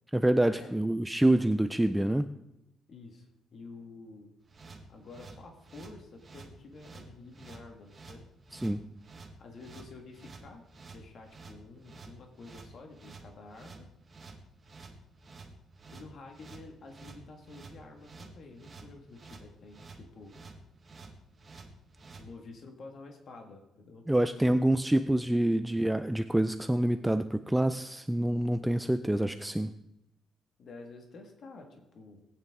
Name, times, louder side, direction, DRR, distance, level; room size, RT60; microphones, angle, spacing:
voice 1, 0.1-2.3 8.5-8.9 24.1-29.7, right 1 dB, 5° right, 9 dB, 0.3 m, -26 dB
voice 2, 2.9-4.3 4.9-8.2 9.4-10.6 10.9-13.9 15.9-20.4 22.2-24.1 30.6-32.3, left 3 dB, 45° left, 3 dB, 1.7 m, -50 dB
sound 1, 4.5-22.3, right 4 dB, 25° right, 1.4 m, -50 dB
19.0 x 9.1 x 3.6 m, 0.89 s
cardioid pair, 160°, 0 cm